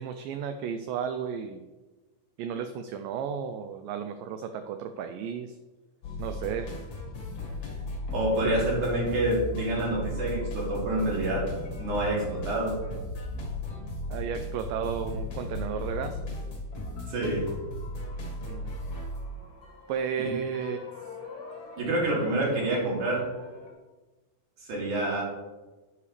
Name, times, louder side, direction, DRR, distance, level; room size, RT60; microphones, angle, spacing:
voice 1, 0.0-1.6 2.4-5.6 6.2-6.7 8.4-8.6 14.1-16.2 18.4-18.7 19.9-20.9, right 7 dB, 80° right, 8 dB, 2.0 m, -33 dB
sound 1, 6.0-23.7, left 1 dB, 45° left, 2.3 m, -37 dB
voice 2, 8.1-12.7 17.1-17.5 20.2-20.3 21.8-23.2 24.7-25.2, right 1 dB, 55° right, -4 dB, 4.1 m, -27 dB
11.0 x 9.6 x 3.3 m, 1.2 s
omnidirectional pair, 4.5 m